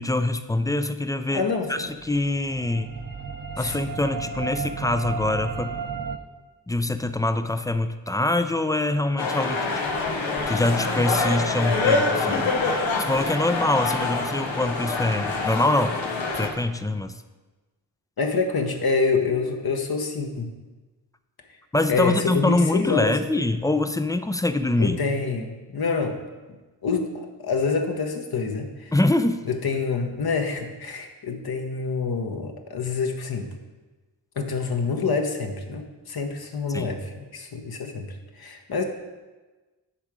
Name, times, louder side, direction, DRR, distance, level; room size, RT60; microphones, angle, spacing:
voice 1, 0.0-2.9 3.6-5.8 6.7-9.7 10.5-12.5 13.0-16.0 16.3-17.2 21.7-25.0 28.9-29.4 36.7-36.9, left 2 dB, 10° left, 10 dB, 0.4 m, -24 dB
voice 2, 1.3-1.9 3.6-3.8 18.2-20.5 21.9-23.1 24.8-26.2 26.8-28.9 29.4-33.5 34.4-38.1 38.4-38.8, left 4 dB, 55° left, 4 dB, 1.0 m, -26 dB
sound 1, 1.8-6.2, right 5 dB, 50° right, 0.7 m, -34 dB
sound 2, 9.2-16.5, left 3 dB, 85° left, 0.9 m, -25 dB
9.8 x 3.6 x 4.9 m, 1.2 s
supercardioid pair, 40°, 44 cm